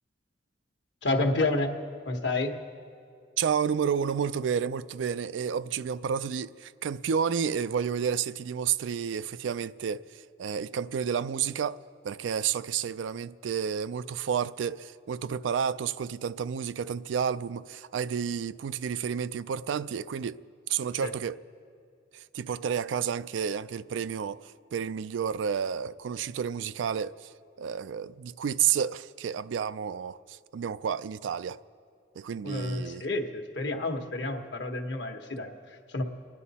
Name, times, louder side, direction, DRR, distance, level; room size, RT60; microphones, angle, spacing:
voice 1, 1.0-1.7 2.0-2.6 21.0-21.1 32.4-36.0, left 2 dB, 70° left, 1.2 m, -30 dB
voice 2, 3.4-11.8 12.0-20.4 20.7-21.4 22.1-27.3 27.6-31.6 32.2-33.0, right 7 dB, 85° right, 0.3 m, -31 dB
27.0 x 10.5 x 4.2 m
head